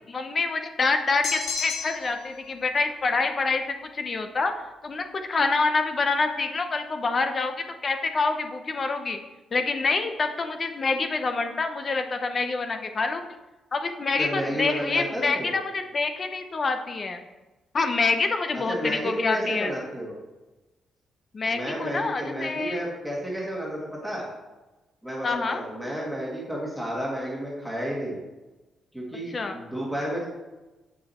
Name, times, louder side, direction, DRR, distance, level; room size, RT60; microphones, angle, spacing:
voice 1, 0.1-4.5 4.8-7.6 7.8-9.2 9.5-13.2 13.7-17.2 17.7-19.7 21.3-22.8 25.2-25.6 29.3-29.6, left 3 dB, 35° left, 7 dB, 0.8 m, -26 dB
sound 1, 1.2-2.2, left 6 dB, 70° left, 1.0 m, -31 dB
voice 2, 14.2-15.5 18.5-20.2 21.4-24.3 25.0-28.2 28.9-30.3, equal, ahead, -4 dB, 1.9 m, -31 dB
8.0 x 6.1 x 4.3 m, 1.1 s
cardioid pair, 120°, 0 cm